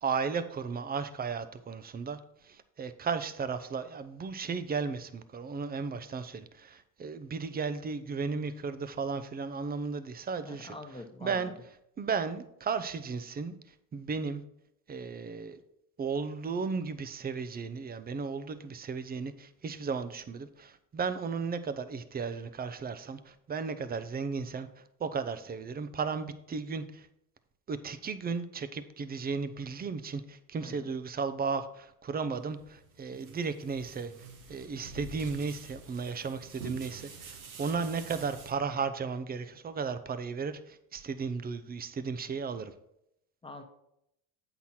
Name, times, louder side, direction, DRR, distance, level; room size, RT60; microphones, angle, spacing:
voice 1, 0.0-10.8 11.2-11.5 12.0-13.5 13.9-14.4 14.9-15.6 16.0-27.1 27.7-34.1 34.5-42.7, right 5 dB, 20° right, 12 dB, 0.7 m, -35 dB
voice 2, 10.4-11.5 30.6-30.9 43.4-43.6, left 2 dB, 10° left, 4 dB, 1.2 m, -45 dB
sound 1, 32.4-38.5, right 4 dB, 90° right, 1.4 m, -47 dB
8.1 x 5.9 x 4.4 m, 0.78 s
hypercardioid pair, 85°, 42 cm